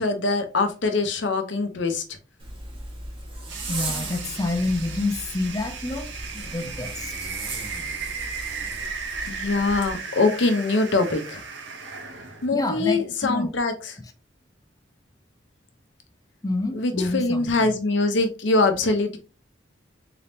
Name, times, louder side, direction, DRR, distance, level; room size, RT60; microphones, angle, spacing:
voice 1, 0.0-2.0 9.3-11.4 12.4-14.0 16.7-19.2, left 3 dB, 70° left, 0.8 m, -23 dB
Zipper (clothing), 2.4-9.9, right 2 dB, 30° right, 1.2 m, -37 dB
voice 2, 3.4-7.3 12.5-13.5 16.4-17.7, left 2 dB, 20° left, 0.5 m, -28 dB
sound 1, 3.5-12.5, right 5 dB, 65° right, 0.7 m, -36 dB
3.9 x 3.5 x 2.7 m
head